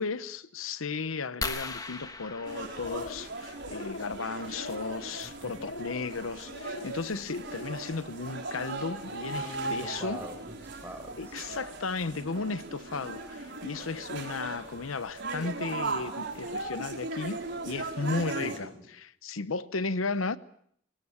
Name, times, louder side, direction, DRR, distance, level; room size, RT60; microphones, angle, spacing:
voice 1, 0.0-10.2 11.2-20.4, left 4 dB, 90° left, 0.9 m, -35 dB
sound 1, 1.4-3.8 5.4-5.6 6.2-6.3 6.5-6.8, left 3 dB, 20° left, 1.3 m, -38 dB
sound 2, 2.4-18.6, right 3 dB, 60° right, 4.8 m, -38 dB
sound 3, 2.6-3.3 3.6-4.1 4.5-5.1 5.6-6.1 6.5-6.9 7.4-7.8, left 3 dB, 65° left, 1.6 m, -41 dB
voice 2, 5.2-5.6 9.3-11.4 18.4-18.9, equal, 10° right, 4.8 m, -44 dB
24.5 x 20.0 x 7.1 m
head